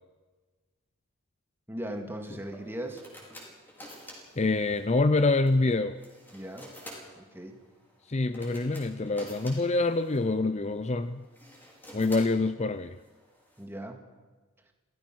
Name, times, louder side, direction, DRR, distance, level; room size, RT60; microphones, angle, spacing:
voice 1, 1.7-3.0 6.3-6.7 7.2-7.6 13.6-14.1, right 1 dB, 10° right, 4 dB, 2.2 m, -38 dB
sound 1, 2.4-13.6, equal, 10° left, 5.3 m, -50 dB
voice 2, 4.4-6.0 8.1-11.2 11.9-13.0, left 3 dB, 30° left, 11 dB, 0.6 m, -26 dB
27.0 x 17.5 x 6.3 m, 1.3 s
head